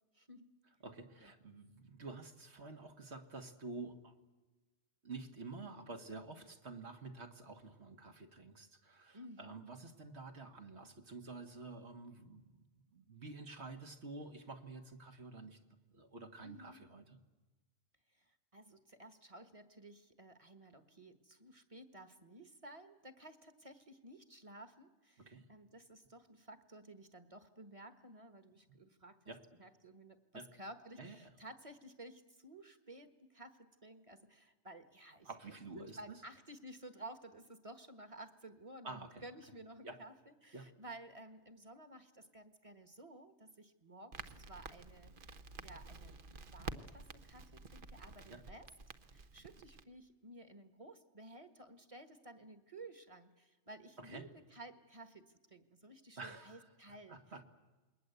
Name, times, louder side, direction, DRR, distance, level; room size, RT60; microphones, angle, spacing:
voice 1, 0.1-0.5 1.2-1.3 9.1-9.5 16.4-16.8 18.1-29.2 29.6-46.2 46.5-48.7 49.1-57.2, right 1 dB, 30° right, 10 dB, 1.6 m, -54 dB
voice 2, 0.8-4.1 5.0-15.6 15.9-17.0 25.2-25.5 29.3-29.4 30.3-30.5 31.0-31.3 35.3-36.2 38.8-39.2 39.8-40.0 40.5-40.7 48.3-48.4 54.0-54.2 56.2-56.7 57.1-57.4, right 3 dB, 65° right, 5 dB, 2.1 m, -49 dB
Crackle, 44.1-49.8, right 4 dB, 50° right, 1.1 m, -50 dB
28.0 x 21.5 x 8.1 m, 1.2 s
omnidirectional pair, 1.2 m